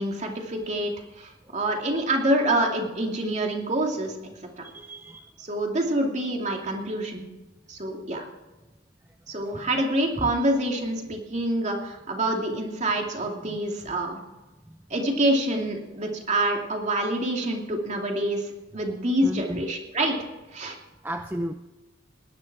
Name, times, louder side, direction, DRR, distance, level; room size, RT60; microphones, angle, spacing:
voice 1, 0.0-4.2 5.4-7.2 7.7-8.3 9.3-14.2 14.9-20.2 20.5-20.8, right 1 dB, 35° right, 1 dB, 2.6 m, -26 dB
voice 2, 4.6-5.3 9.5-9.7 10.2-10.3 19.2-19.6 21.0-21.5, right 1 dB, 10° right, 6 dB, 0.5 m, -33 dB
19.0 x 11.0 x 4.7 m, 1.1 s
head